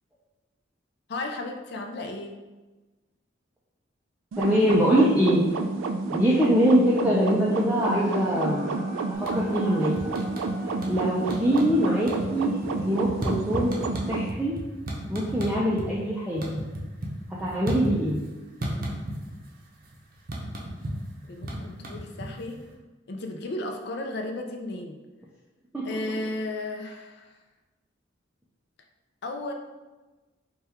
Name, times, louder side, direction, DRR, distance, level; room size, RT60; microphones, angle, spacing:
voice 1, 1.1-2.4 21.3-22.6 23.1-25.0 25.8-27.4 29.2-29.5, left 2 dB, 55° left, 3 dB, 0.4 m, -34 dB
sound 1, 4.3-14.3, right 3 dB, 80° right, 0.3 m, -30 dB
voice 2, 4.4-5.5 6.1-8.7 9.2-10.0 10.8-13.7 14.1-14.6 15.1-16.6 17.4-18.2 25.7-26.0, equal, 10° right, -6 dB, 0.4 m, -23 dB
sound 2, 7.6-12.5, equal, 35° left, 1.1 m, -43 dB
sound 3, 9.1-9.6 10.0-11.0 11.3-11.8 12.0-15.9 16.2-18.3 18.6-19.5 19.7-22.6, right 1 dB, 45° right, 0.6 m, -33 dB
4.3 x 2.3 x 3.4 m, 1.2 s
head